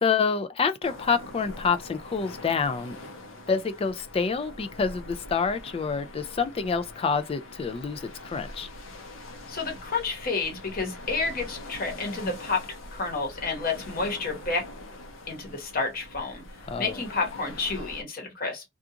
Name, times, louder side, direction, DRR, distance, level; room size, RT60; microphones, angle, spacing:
voice 1, 0.0-3.0 3.5-8.7 16.7-17.0, left 5 dB, 30° left, 0.3 m, -27 dB
sound 1, 0.8-18.0, left 1 dB, 90° left, 0.8 m, -43 dB
voice 2, 9.5-12.7 12.9-14.6 15.3-16.4 16.8-18.6, left 4 dB, 50° left, 1.0 m, -30 dB
2.4 x 2.4 x 2.8 m
head